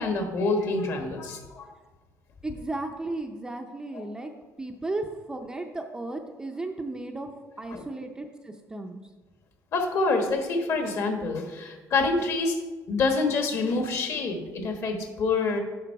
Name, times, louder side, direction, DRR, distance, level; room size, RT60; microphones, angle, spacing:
voice 1, 0.0-1.7 3.9-4.0 7.7-7.8 9.7-12.6 12.9-15.6, left 3 dB, 50° left, 4 dB, 1.3 m, -26 dB
voice 2, 2.4-4.3 4.6-7.3 7.6-9.0, right 2 dB, 10° right, 4 dB, 0.5 m, -34 dB
9.8 x 5.5 x 4.7 m, 1.3 s
cardioid pair, 155°, 6 cm